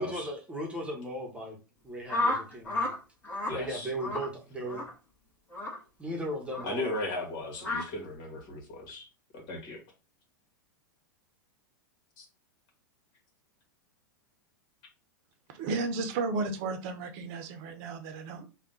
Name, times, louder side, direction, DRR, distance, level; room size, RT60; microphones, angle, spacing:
voice 1, 0.0-1.6 1.8-2.9 3.5-4.8 6.0-7.0, equal, 10° right, -1 dB, 1.2 m, -36 dB
sound 1, 2.1-3.0 3.2-3.6 4.0-4.3 4.7-4.9 5.5-5.8 6.5-6.7 7.6-7.8, left 2 dB, 15° left, 1.7 m, -31 dB
voice 2, 3.5-3.9 6.6-9.1 9.3-9.8 12.2-12.3, left 2 dB, 45° left, 1 dB, 1.9 m, -37 dB
voice 3, 15.5-18.5, right 3 dB, 50° right, 7 dB, 0.9 m, -33 dB
3.5 x 2.5 x 3.9 m, 0.31 s
hypercardioid pair, 105°, 11 cm